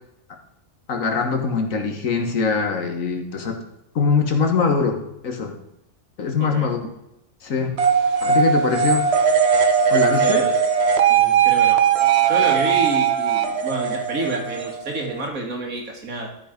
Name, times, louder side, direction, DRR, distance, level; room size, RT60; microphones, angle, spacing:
voice 1, 0.9-3.6 4.0-5.5 6.2-6.8 7.4-7.7 8.2-9.1 9.9-10.5, left 5 dB, 75° left, 4 dB, 1.8 m, -22 dB
sound 1, 7.8-15.3, right 7 dB, 55° right, 1.0 m, -19 dB
voice 2, 10.2-10.6 11.1-11.8 12.3-16.3, right 2 dB, 85° right, 1 dB, 2.4 m, -28 dB
12.5 x 5.3 x 5.1 m, 0.83 s
omnidirectional pair, 1.4 m